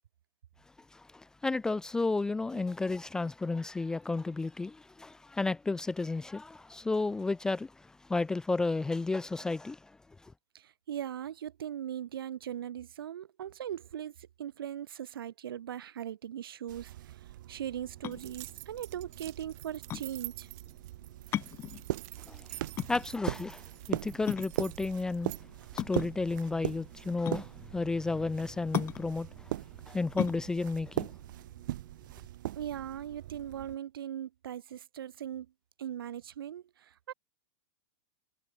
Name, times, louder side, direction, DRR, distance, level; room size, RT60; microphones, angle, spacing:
voice 1, 0.9-9.9 10.2-10.3 22.3-22.6 22.9-25.3 25.7-29.3 29.9-31.1, left 3 dB, 5° left, 0.4 m, -32 dB
voice 2, 10.5-17.2 17.5-20.5 32.5-35.5 35.8-37.1, right 10 dB, 90° right, 2.2 m, -39 dB
sound 1, 16.7-33.8, right 14 dB, 60° right, 2.4 m, -40 dB
sound 2, 17.9-32.2, left 12 dB, 20° left, 1.0 m, -39 dB
sound 3, 18.1-25.4, right 29 dB, 40° right, 2.6 m, -48 dB
supercardioid pair, 160°, 12 cm